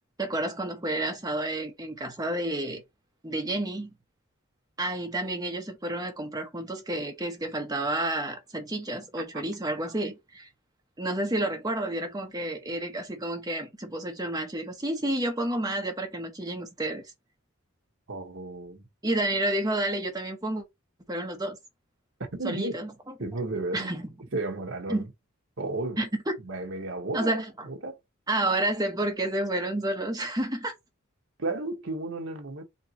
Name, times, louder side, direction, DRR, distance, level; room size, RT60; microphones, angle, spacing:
voice 1, 0.2-2.8 3.2-3.9 4.8-10.5 11.0-17.0 19.0-20.6 21.1-21.6 22.4-22.9 23.7-24.1 24.9-25.1 26.0-26.1 27.1-27.7 28.3-30.7, right 1 dB, 15° right, 1.0 m, -30 dB
voice 2, 18.1-18.9 22.3-22.7 23.2-23.9 24.3-25.1 25.6-26.0 26.4-28.0 31.4-32.6, right 2 dB, 60° right, 1.2 m, -33 dB
4.3 x 3.0 x 2.9 m
head